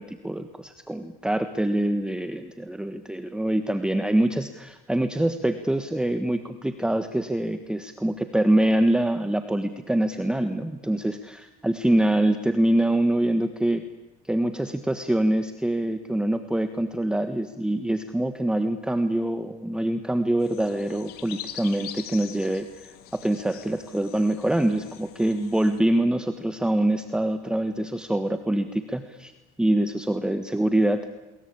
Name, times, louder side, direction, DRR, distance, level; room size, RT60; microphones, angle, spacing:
voice 1, 0.0-13.9 14.3-29.3 29.6-31.1, right 1 dB, 5° right, 9 dB, 1.4 m, -25 dB
sound 1, 20.4-25.8, left 11 dB, 65° left, 2.7 m, -43 dB
30.0 x 22.0 x 8.7 m, 1.1 s
supercardioid pair, 110°, 17 cm